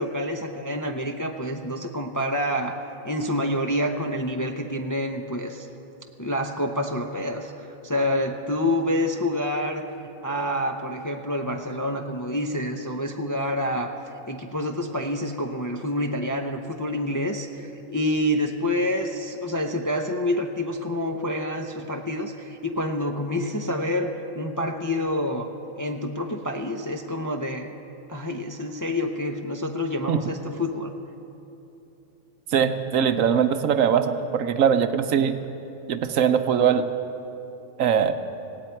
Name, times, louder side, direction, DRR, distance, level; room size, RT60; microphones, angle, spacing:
voice 1, 0.0-2.8 3.0-5.7 6.2-9.9 10.2-13.9 14.3-24.1 24.3-25.5 25.8-27.7 28.1-30.9, left 1 dB, 25° left, 3 dB, 0.5 m, -27 dB
voice 2, 32.5-35.4 35.9-36.9 37.8-38.1, right 8 dB, 80° right, 9 dB, 1.1 m, -21 dB
17.5 x 17.5 x 4.5 m, 2.9 s
omnidirectional pair, 1.4 m